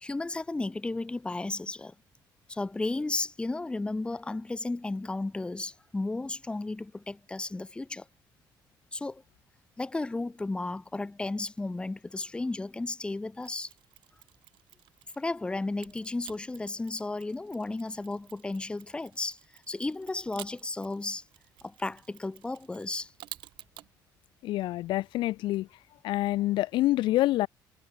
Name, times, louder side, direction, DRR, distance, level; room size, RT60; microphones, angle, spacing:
voice 1, 0.0-1.9 2.5-8.0 8.9-9.2 9.8-13.7 15.2-21.2 21.6-23.1, left 2 dB, 10° left, 0.7 m, -34 dB
Mechanisms, 13.4-15.3 15.8-23.9, right 15 dB, 80° right, 3.7 m, -51 dB
voice 2, 24.4-25.7 26.0-27.5, left 16 dB, 80° left, 0.5 m, -26 dB
cardioid pair, 105°, 8 cm